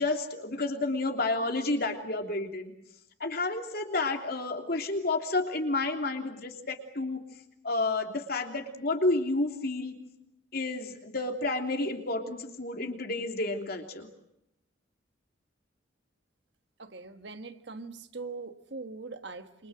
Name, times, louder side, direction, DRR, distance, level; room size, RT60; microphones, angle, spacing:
voice 1, 0.0-2.7 3.2-7.2 7.6-10.0 10.5-14.1, left 2 dB, 50° left, 4 dB, 3.1 m, -30 dB
voice 2, 16.8-19.7, right 3 dB, 60° right, 8 dB, 1.5 m, -42 dB
27.5 x 25.5 x 7.8 m, 0.80 s
head